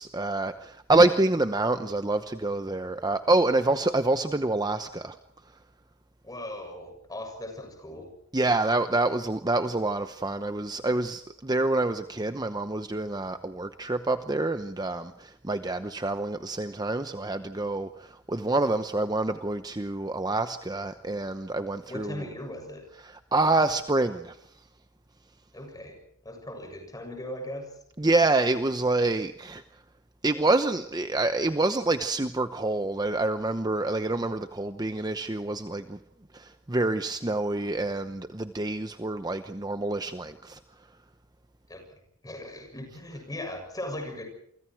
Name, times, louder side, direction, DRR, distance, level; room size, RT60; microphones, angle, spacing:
voice 1, 0.0-5.2 8.3-22.2 23.3-24.4 28.0-29.6 30.2-36.0 36.3-40.6, right 2 dB, 20° right, 9 dB, 0.8 m, -27 dB
voice 2, 6.2-8.2 21.9-22.9 25.5-27.8 41.7-44.2, left 1 dB, 15° left, 4 dB, 7.1 m, -39 dB
28.5 x 25.0 x 4.7 m, 0.68 s
head